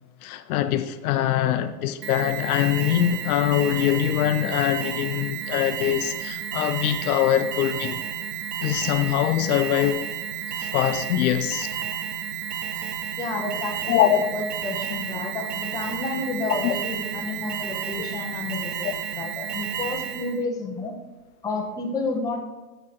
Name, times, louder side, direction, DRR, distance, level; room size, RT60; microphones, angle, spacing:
voice 1, 0.2-8.0 8.6-10.1 10.6-11.7 13.9-14.3 16.5-16.8 18.8-18.9, left 11 dB, 65° left, 0.6 m, -23 dB
Alarm, 2.0-20.4, right 8 dB, 80° right, 1.0 m, -32 dB
voice 2, 13.2-18.9 19.2-21.0 21.4-22.4, left 3 dB, 10° left, 0.9 m, -30 dB
7.9 x 6.1 x 4.4 m
supercardioid pair, 150°, 47 cm